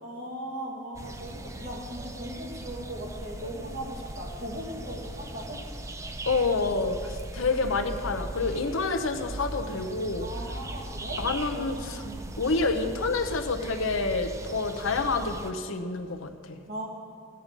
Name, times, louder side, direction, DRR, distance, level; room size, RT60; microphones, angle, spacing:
voice 1, 0.0-5.6 10.2-11.2 11.5-11.7 12.0-12.3 16.7-16.9, right 1 dB, 45° right, -4 dB, 2.7 m, -38 dB
sound 1, 0.9-15.5, right 1 dB, 15° right, 0.4 m, -39 dB
voice 2, 6.3-10.3 11.2-12.0 12.4-16.6, left 3 dB, 70° left, 5 dB, 0.8 m, -28 dB
14.0 x 8.7 x 5.3 m, 2.4 s
head